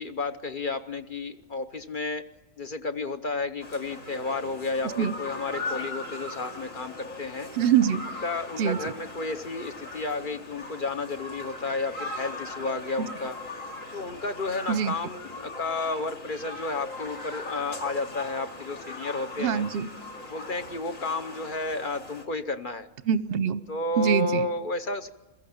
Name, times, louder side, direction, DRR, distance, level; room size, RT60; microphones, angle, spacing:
voice 1, 0.0-2.2 2.6-7.5 8.2-13.4 13.9-19.6 20.3-22.9 23.7-25.1, left 3 dB, 40° left, 9 dB, 0.9 m, -32 dB
sound 1, 3.6-22.2, left 2 dB, 55° left, 2.7 m, -39 dB
voice 2, 7.5-8.0 8.6-8.8 14.7-14.9 19.4-19.9 23.0-23.6 24.0-24.5, right 8 dB, 50° right, 14 dB, 0.9 m, -24 dB
22.0 x 15.0 x 8.7 m, 1.1 s
omnidirectional pair, 1.6 m